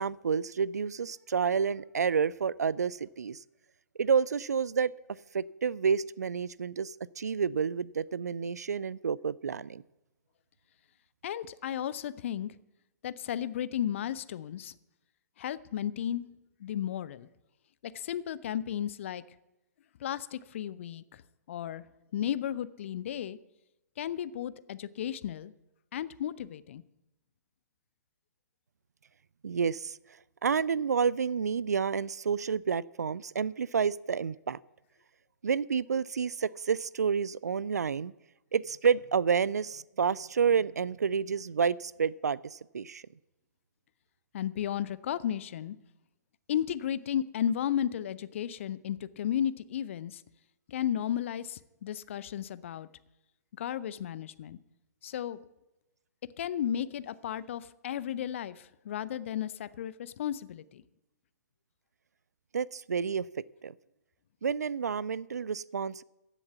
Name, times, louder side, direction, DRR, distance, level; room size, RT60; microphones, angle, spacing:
voice 1, 0.0-3.4 4.0-4.9 5.3-9.8 29.4-30.0 30.4-34.6 35.4-38.1 38.5-43.0 62.5-63.2 63.6-63.7 64.4-66.0, right 6 dB, 65° right, 22 dB, 0.4 m, -29 dB
voice 2, 11.2-12.5 13.0-14.7 15.4-16.2 16.6-17.3 17.8-19.2 20.0-21.2 21.5-21.8 22.1-23.4 24.0-25.5 25.9-26.8 44.3-45.8 46.5-50.2 50.7-52.9 53.6-54.6 55.0-55.4 56.4-60.8, left 10 dB, 45° left, 17 dB, 0.6 m, -34 dB
15.0 x 7.1 x 8.1 m, 0.96 s
figure-of-eight pair, 120°, 10 cm